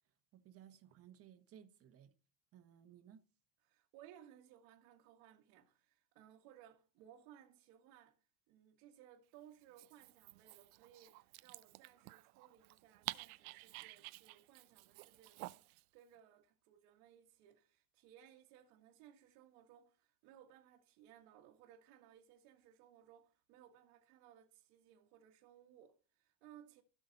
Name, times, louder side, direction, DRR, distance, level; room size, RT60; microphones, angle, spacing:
voice 1, 0.3-2.1 2.5-3.2, right 10 dB, 30° right, 1.5 m, -60 dB
voice 2, 3.6-8.2 8.5-26.8, right 10 dB, 60° right, 1.8 m, -62 dB
Dog, 9.6-15.8, right 21 dB, 75° right, 0.7 m, -51 dB
16.0 x 6.3 x 4.0 m
supercardioid pair, 160°, 44 cm